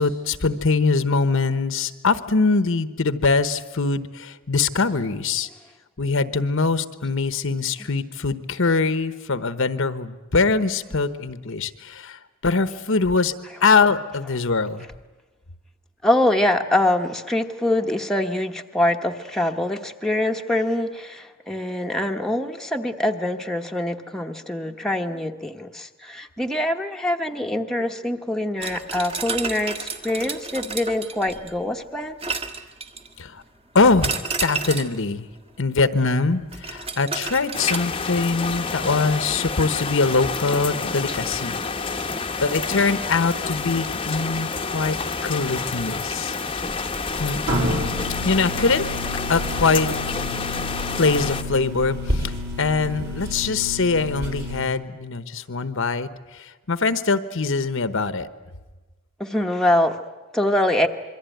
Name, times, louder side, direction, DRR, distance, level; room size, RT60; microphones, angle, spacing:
voice 1, 0.0-5.5 6.0-13.3 13.6-14.9 33.2-33.4 33.7-34.2 34.4-35.3 35.6-41.6 42.4-45.0 45.2-46.4 47.1-47.4 48.2-48.9 49.3-49.9 50.2-50.4 51.0-58.3, left 4 dB, 60° left, 12 dB, 1.0 m, -23 dB
voice 2, 16.0-32.2 41.5-42.4 59.2-60.0 60.3-60.9, left 1 dB, ahead, 2 dB, 1.1 m, -24 dB
sound 1, 28.6-31.6 32.2-33.2 34.0-35.0 36.5-37.8, right 4 dB, 25° right, 1.6 m, -31 dB
sound 2, 37.5-51.4, left 4 dB, 25° left, 1.0 m, -29 dB
sound 3, 46.6-54.6, left 1 dB, 55° right, 5.9 m, -30 dB
26.5 x 23.0 x 9.2 m, 1.2 s
head